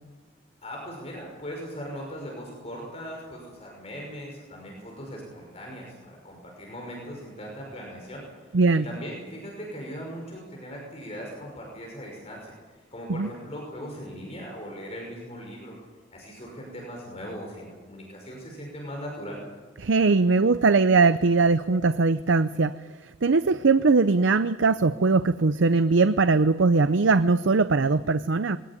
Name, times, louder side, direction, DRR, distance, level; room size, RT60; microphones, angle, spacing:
voice 1, 0.6-12.6 12.9-15.8 16.1-19.4, equal, 35° left, -1 dB, 5.9 m, -39 dB
voice 2, 8.5-8.8 13.1-13.3 19.8-22.7 23.2-28.6, right 4 dB, 85° right, 12 dB, 0.6 m, -20 dB
21.5 x 18.0 x 9.9 m, 1.3 s
head